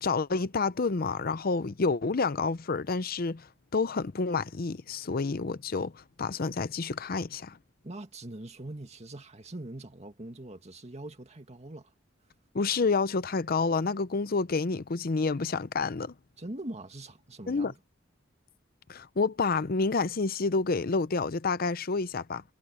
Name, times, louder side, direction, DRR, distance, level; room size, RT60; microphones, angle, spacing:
voice 1, 0.0-3.5 3.7-7.6 12.5-16.1 17.5-17.7 18.9-22.4, left 4 dB, 50° left, 0.6 m, -29 dB
voice 2, 7.8-11.9 16.4-17.8, right 1 dB, 35° right, 2.0 m, -42 dB
head